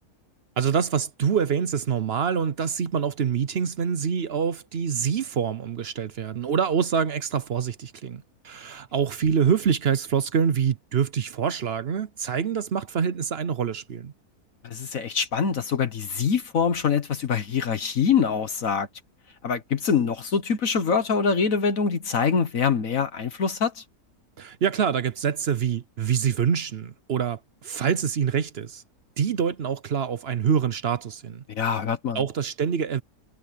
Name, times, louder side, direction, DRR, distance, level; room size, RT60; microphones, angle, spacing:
voice 1, 0.6-14.1 24.4-28.8 29.2-31.4 32.1-33.0, right 7 dB, 50° right, 0.8 m, -25 dB
voice 2, 14.6-18.9 19.4-23.8 31.5-32.2, left 6 dB, 60° left, 1.6 m, -24 dB
omnidirectional pair, 1.6 m